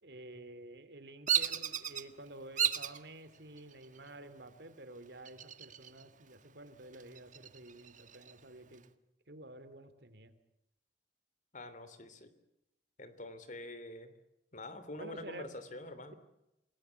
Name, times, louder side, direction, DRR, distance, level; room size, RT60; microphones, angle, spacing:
voice 1, 0.0-8.9 9.3-10.3 14.9-15.5, right 1 dB, 65° right, 11 dB, 3.0 m, -50 dB
Bird vocalization bird call bird song, 1.3-2.0 2.6-3.0 3.6-4.1 5.2-6.0 6.4-6.5 6.9-8.3, right 9 dB, 45° right, 1.6 m, -33 dB
voice 2, 11.5-12.3 13.0-14.1 14.5-16.1, left 1 dB, 45° left, 12 dB, 3.2 m, -46 dB
28.5 x 19.5 x 8.3 m, 0.87 s
head